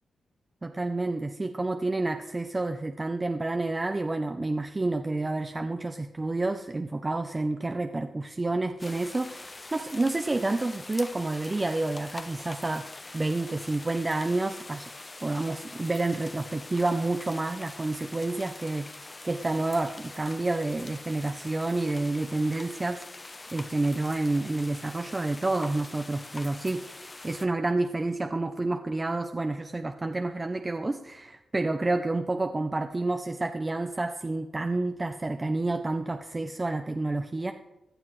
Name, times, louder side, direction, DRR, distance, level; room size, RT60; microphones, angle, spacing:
voice 1, 0.6-12.9 13.1-14.9 15.2-18.9 19.2-37.5, right 2 dB, 25° right, 6 dB, 0.6 m, -29 dB
sound 1, 8.8-27.5, left 2 dB, 25° left, 0.7 m, -44 dB
16.5 x 12.0 x 3.2 m, 0.96 s
cardioid pair, 85°, 0 cm